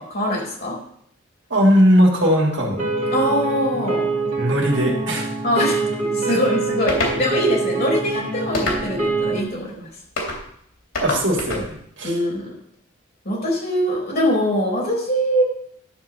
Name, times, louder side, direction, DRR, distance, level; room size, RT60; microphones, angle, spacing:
voice 1, 0.1-0.8 3.1-4.1 5.4-5.8 6.1-9.9 12.0-12.5 13.2-15.4, equal, 45° left, -3 dB, 4.2 m, -22 dB
voice 2, 1.5-2.8 4.4-5.3 6.3-6.4 11.0-12.2, equal, 55° right, -2 dB, 2.8 m, -18 dB
sound 1, 2.8-9.4, right 3 dB, 35° right, 3.2 m, -25 dB
sound 2, 6.9-7.2 8.5-9.1 10.2-10.4 10.9-11.7, left 2 dB, 70° left, 3.2 m, -25 dB
12.0 x 4.8 x 7.0 m, 0.69 s
head